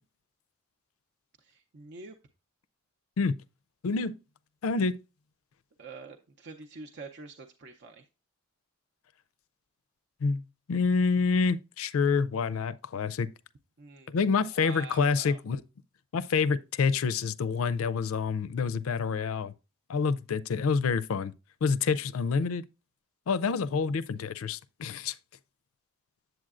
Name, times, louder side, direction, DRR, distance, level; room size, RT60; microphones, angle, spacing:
voice 1, 1.4-2.2 5.8-8.1 13.8-14.1 14.4-15.4, right 3 dB, 55° right, 0.6 m, -46 dB
voice 2, 3.8-4.2 4.6-5.0 10.2-10.4 10.7-13.3 14.1-15.6 16.1-19.5 19.9-21.3 21.6-22.6 23.3-25.1, left 5 dB, 75° left, 0.4 m, -27 dB
7.9 x 7.6 x 2.4 m
head